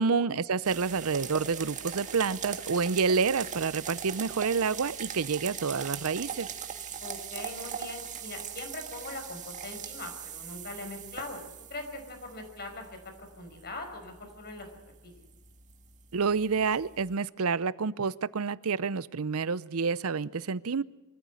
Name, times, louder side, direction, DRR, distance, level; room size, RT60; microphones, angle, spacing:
voice 1, 0.0-6.5 16.1-20.8, right 5 dB, 80° right, 19 dB, 0.7 m, -28 dB
sound 1, 0.6-17.1, right 7 dB, 35° right, 1.9 m, -41 dB
voice 2, 7.0-14.7 15.0-15.1, left 2 dB, 45° left, 4 dB, 5.6 m, -41 dB
24.5 x 14.5 x 9.6 m, 1.1 s
head